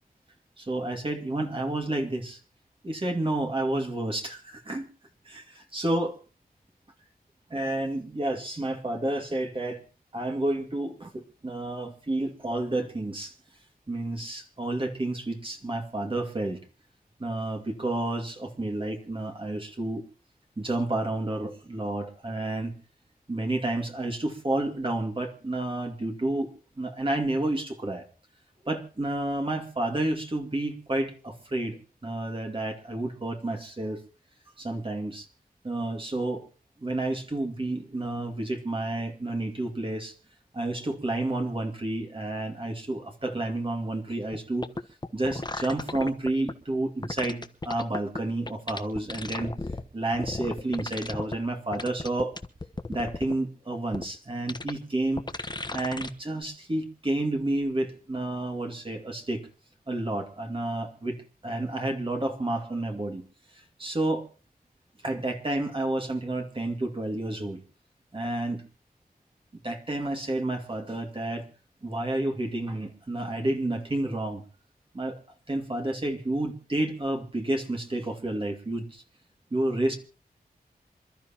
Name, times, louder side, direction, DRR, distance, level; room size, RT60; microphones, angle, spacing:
voice 1, 0.6-2.4 2.8-4.9 5.2-6.2 7.5-9.8 10.1-13.3 13.9-16.6 17.2-20.0 20.6-22.8 23.3-28.0 28.6-34.0 34.6-35.3 35.6-36.5 36.8-40.1 40.5-44.6 45.1-49.5 49.9-52.4 52.9-55.3 55.7-59.5 59.9-63.2 63.5-64.3 65.0-67.6 68.1-68.6 69.6-71.5 71.8-74.4 74.9-75.2 75.5-79.0 79.5-80.0, right 1 dB, 35° right, 2 dB, 2.4 m, -30 dB
sound 1, 44.3-44.4 44.6-46.5 47.0-48.2 48.5-49.8 50.1-51.4 51.7-53.3 53.9-54.0 54.5-54.7 55.2-56.1 56.4-56.5, left 2 dB, 30° left, 1.2 m, -34 dB
27.0 x 12.5 x 3.0 m, 0.37 s
wide cardioid pair, 95°, 16 cm